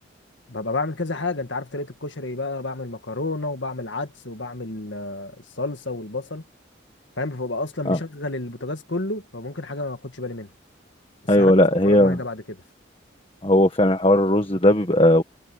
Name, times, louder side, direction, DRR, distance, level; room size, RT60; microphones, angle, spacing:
voice 1, 0.5-6.4 7.2-10.5 11.3-11.5 11.9-12.6, left 2 dB, 70° left, 2.1 m, -30 dB
voice 2, 11.3-12.2 13.4-15.2, left 1 dB, 30° left, 1.4 m, -17 dB
head